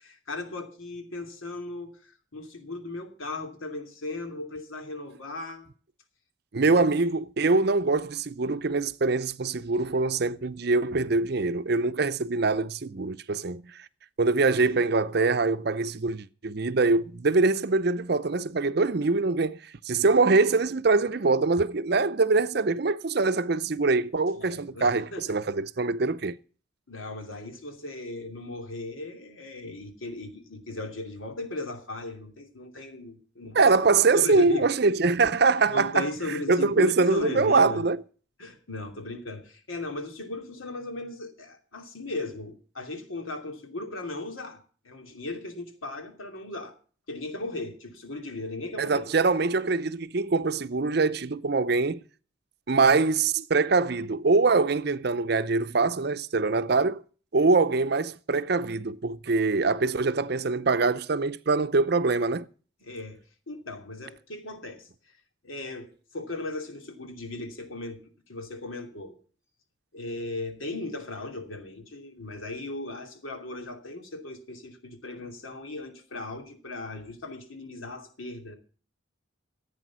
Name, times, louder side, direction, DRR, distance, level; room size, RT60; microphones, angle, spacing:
voice 1, 0.0-5.7 6.7-6.8 14.5-15.0 24.3-25.3 26.9-33.7 34.1-34.7 35.7-37.8 38.4-46.7 47.1-49.0 62.8-63.2 63.5-64.9 65.4-69.2 69.9-78.6, left 2 dB, 85° left, 2.8 m, -37 dB
voice 2, 6.5-13.9 14.2-26.4 33.5-38.0 48.8-52.0 52.7-57.0 57.3-62.5, right 3 dB, 50° right, 0.6 m, -24 dB
15.5 x 8.7 x 6.1 m
head